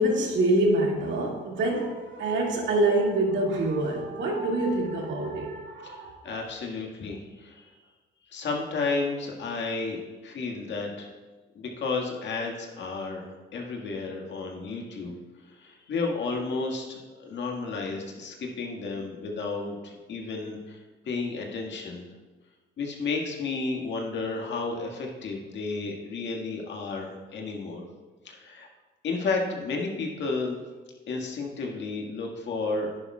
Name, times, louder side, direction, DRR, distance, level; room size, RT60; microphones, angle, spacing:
voice 1, 0.0-6.5, right 1 dB, 70° right, -1 dB, 2.2 m, -26 dB
voice 2, 6.2-7.7 8.3-11.1 11.6-15.1 15.4-20.8 21.0-22.0 22.8-27.8 28.2-28.7 29.0-30.6 31.1-33.0, left 3 dB, 65° left, 0 dB, 1.8 m, -32 dB
10.5 x 10.5 x 2.4 m, 1.2 s
cardioid pair, 90°, 20 cm